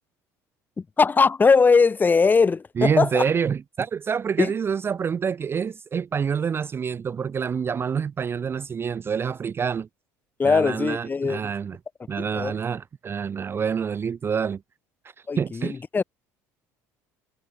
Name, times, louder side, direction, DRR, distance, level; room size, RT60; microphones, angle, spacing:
voice 1, 0.8-3.3 4.4-4.5 10.4-11.4 12.3-12.5 15.3-16.0, left 4 dB, 25° left, 0.9 m, -20 dB
voice 2, 2.8-9.9 10.4-11.8 12.1-14.6 15.4-15.8, right 7 dB, 30° right, 0.4 m, -27 dB
supercardioid pair, 90°, 8 cm